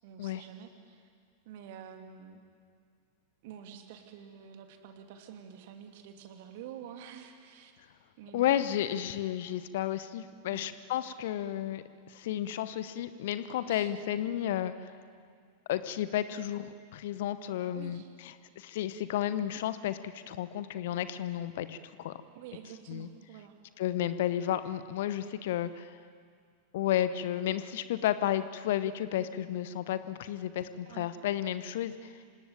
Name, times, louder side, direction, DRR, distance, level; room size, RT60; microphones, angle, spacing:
voice 1, 0.0-1.1 1.4-2.4 3.4-7.7 8.2-8.8 10.5-10.7 13.6-13.9 17.7-18.1 22.3-23.5 30.9-31.1, right 8 dB, 50° right, 5 dB, 2.8 m, -48 dB
voice 2, 8.3-14.9 15.7-22.2 22.9-23.1 23.8-26.0 26.7-32.1, left 11 dB, 55° left, 13 dB, 0.9 m, -32 dB
26.0 x 18.5 x 9.2 m, 2.2 s
figure-of-eight pair, 90°, 0 cm